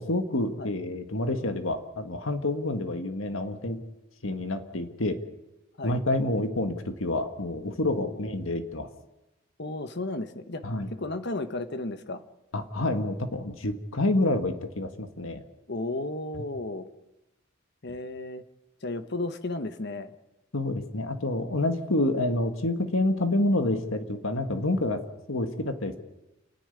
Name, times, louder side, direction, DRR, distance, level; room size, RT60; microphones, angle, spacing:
voice 1, 0.0-3.8 4.2-5.2 5.8-8.9 10.6-10.9 12.5-15.4 20.5-25.0 25.3-26.0, left 2 dB, 70° left, 7 dB, 1.7 m, -28 dB
voice 2, 9.6-10.6 10.9-12.2 15.7-16.9 17.8-18.4 18.8-20.1, left 2 dB, 55° left, 10 dB, 1.3 m, -34 dB
29.0 x 10.0 x 9.8 m, 1.0 s
head